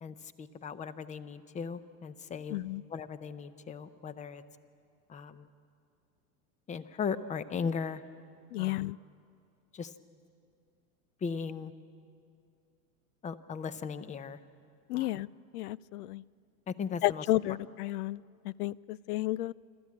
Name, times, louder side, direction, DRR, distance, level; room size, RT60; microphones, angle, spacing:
voice 1, 0.0-2.6 2.9-4.4 5.1-5.5 6.7-8.0 8.6-8.9 9.7-9.9 11.2-11.7 13.2-14.4 14.9-15.3 16.7-17.2, left 6 dB, 15° left, 14 dB, 0.6 m, -37 dB
voice 2, 2.5-2.8 8.5-9.0 14.9-15.3 15.5-16.2 17.0-19.5, left 17 dB, 85° left, 24 dB, 0.5 m, -32 dB
26.5 x 13.5 x 8.5 m, 2.4 s
supercardioid pair, 125°, 44 cm